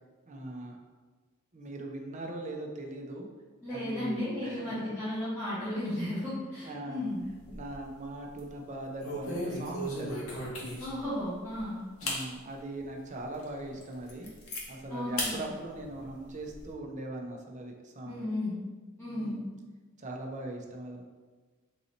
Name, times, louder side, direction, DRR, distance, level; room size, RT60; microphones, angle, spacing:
voice 1, 0.3-0.8 1.5-3.3 3.7-4.9 6.6-7.1 7.5-10.2 12.0-14.3 14.7-18.3 19.1-19.5 20.0-21.0, right 2 dB, 35° right, 1 dB, 0.6 m, -40 dB
voice 2, 3.6-7.2 10.8-11.8 14.9-15.4 18.1-18.5 19.0-19.4, left 1 dB, 10° left, -15 dB, 1.4 m, -34 dB
sound 1, 7.2-7.9 8.2-8.5 9.0-11.1 11.6-11.7 12.0-12.3 12.8-12.9 13.4-13.5 13.8-14.6 15.2-15.3 15.7-16.7, left 1 dB, 75° left, 0.9 m, -36 dB
3.9 x 2.8 x 4.2 m, 1.3 s
head